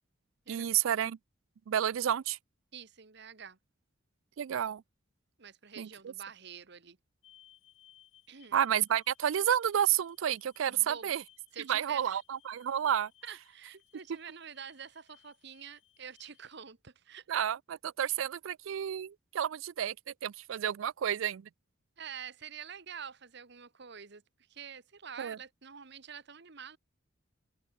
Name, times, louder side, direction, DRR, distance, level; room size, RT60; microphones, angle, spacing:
voice 1, 0.5-1.2 1.7-2.4 4.4-4.8 5.8-5.9 8.5-11.2 11.6-13.1 17.3-19.9 20.2-21.5 25.2-25.4, right 10 dB, 80° right, 0.4 m, -30 dB
voice 2, 2.7-3.6 5.4-7.0 8.3-8.6 10.7-11.1 11.5-12.2 13.2-17.2 22.0-24.2 24.5-26.8, right 7 dB, 60° right, 1.2 m, -47 dB
sound 1, 7.2-16.5, left 13 dB, 80° left, 6.2 m, -65 dB
open air
head